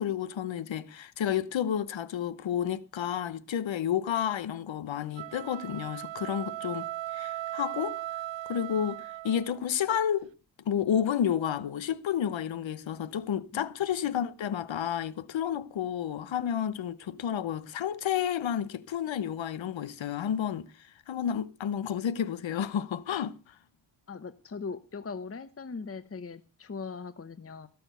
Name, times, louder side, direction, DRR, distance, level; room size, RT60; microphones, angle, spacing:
voice 1, 0.0-6.9 7.1-8.0 8.5-10.3 10.7-23.5, left 9 dB, 90° left, 1.0 m, -31 dB
sound 1, 5.1-9.6, right 15 dB, 80° right, 0.6 m, -38 dB
voice 2, 24.1-27.7, left 5 dB, 30° left, 0.9 m, -40 dB
17.5 x 7.0 x 6.7 m
cardioid pair, 80°, 44 cm